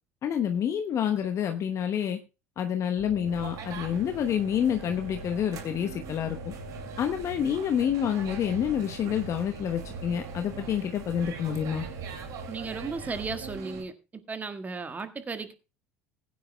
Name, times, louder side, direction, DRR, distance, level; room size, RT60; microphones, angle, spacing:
voice 1, 0.2-2.2 2.6-6.4 7.0-11.8, left 9 dB, 40° left, 6 dB, 1.0 m, -28 dB
sound 1, 3.0-13.6, right 1 dB, 75° right, 4.2 m, -44 dB
sound 2, 3.3-13.8, right 7 dB, 50° right, 2.4 m, -43 dB
voice 2, 12.5-13.9 14.3-15.5, right 4 dB, 20° right, 9 dB, 1.5 m, -35 dB
20.0 x 9.5 x 2.3 m, 0.28 s
figure-of-eight pair, 65°, 7 cm